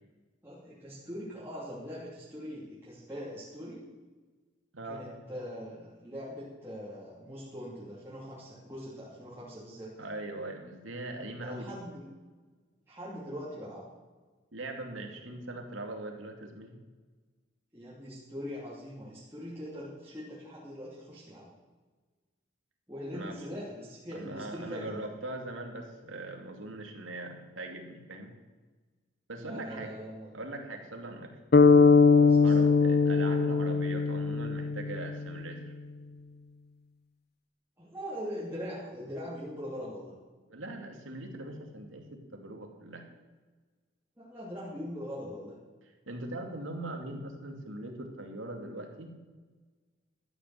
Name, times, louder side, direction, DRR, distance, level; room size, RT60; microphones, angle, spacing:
voice 1, 0.4-3.9 4.9-9.9 11.4-12.1 12.9-13.8 17.7-21.5 22.9-25.0 29.4-30.3 32.1-32.7 37.8-40.1 44.2-45.6, equal, 15° right, -9 dB, 2.9 m, -42 dB
voice 2, 4.7-5.0 10.0-11.7 14.5-16.8 23.1-23.3 24.1-28.3 29.3-29.9 30.3-31.3 32.4-35.7 40.5-43.0 46.1-49.1, right 2 dB, 90° right, 3 dB, 2.4 m, -41 dB
sound 1, 31.5-35.5, left 4 dB, 50° left, 0.6 m, -21 dB
13.5 x 8.7 x 7.8 m, 1.3 s
head